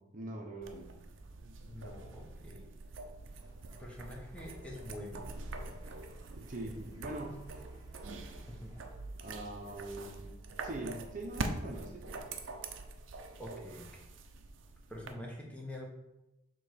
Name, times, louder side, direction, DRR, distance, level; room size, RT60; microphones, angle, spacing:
voice 1, 0.1-0.9 6.4-7.6 9.2-10.3 10.6-12.2, right 1 dB, 40° right, 1 dB, 0.8 m, -43 dB
sound 1, 0.6-15.1, right 3 dB, 80° right, 0.6 m, -44 dB
voice 2, 1.7-2.6 3.8-5.2 8.5-8.7 13.4-13.9 14.9-15.9, left 1 dB, 5° left, -2 dB, 1.1 m, -45 dB
sound 2, 3.3-9.0, right 1 dB, 20° right, 1.1 m, -56 dB
7.0 x 3.1 x 5.0 m, 0.95 s
head